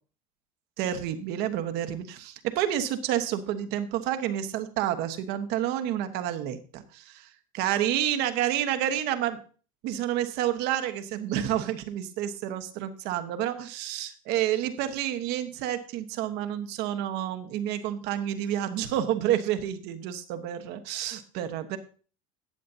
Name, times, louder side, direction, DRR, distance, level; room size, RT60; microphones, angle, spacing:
voice 1, 0.8-7.3 7.6-9.4 9.8-21.8, right 11 dB, 65° right, 9 dB, 1.2 m, -29 dB
13.5 x 8.5 x 2.8 m, 0.39 s
supercardioid pair, 90°, 18 cm